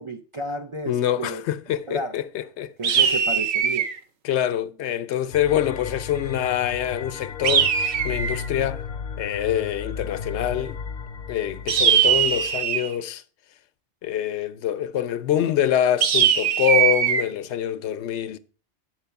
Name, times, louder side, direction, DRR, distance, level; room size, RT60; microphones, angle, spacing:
voice 1, 0.0-1.4 1.9-2.2 2.8-3.9, right 2 dB, 40° right, 0.4 m, -31 dB
voice 2, 0.9-3.2 4.2-8.8 9.2-10.8 11.3-13.2 14.0-18.4, left 11 dB, 85° left, 0.9 m, -25 dB
sound 1, 2.8-4.0 7.4-8.5 11.7-12.9 16.0-17.2, right 8 dB, 75° right, 1.0 m, -20 dB
sound 2, 5.3-12.6, left 6 dB, 55° left, 0.6 m, -35 dB
8.1 x 4.5 x 5.6 m
omnidirectional pair, 1.1 m